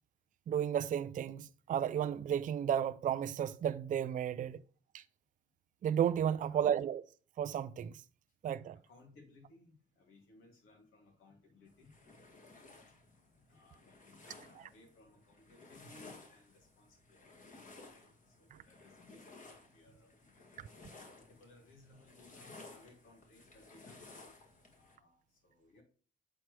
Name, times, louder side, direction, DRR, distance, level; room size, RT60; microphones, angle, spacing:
voice 1, 0.5-4.6 4.9-5.0 5.8-7.0 7.4-8.0 8.4-8.8 14.3-14.7, right 9 dB, 40° right, 0.4 m, -33 dB
voice 2, 8.9-12.8 13.5-17.5 17.9-24.2 24.8-25.8, left 2 dB, 85° left, 2.5 m, -63 dB
sound 1, 11.7-25.0, left 3 dB, 40° left, 1.8 m, -57 dB
7.4 x 4.6 x 3.2 m
cardioid pair, 90°, 20 cm